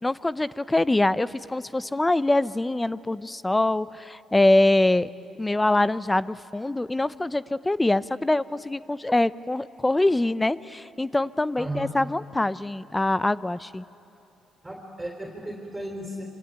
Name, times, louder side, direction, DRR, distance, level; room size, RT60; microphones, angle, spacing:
voice 1, 0.0-5.1 5.4-13.8, left 2 dB, 15° left, 16 dB, 0.6 m, -24 dB
voice 2, 11.6-11.9 14.6-16.2, right 1 dB, 10° right, 0 dB, 3.9 m, -35 dB
25.5 x 25.5 x 9.2 m, 2.9 s
cardioid pair, 90°, 0 cm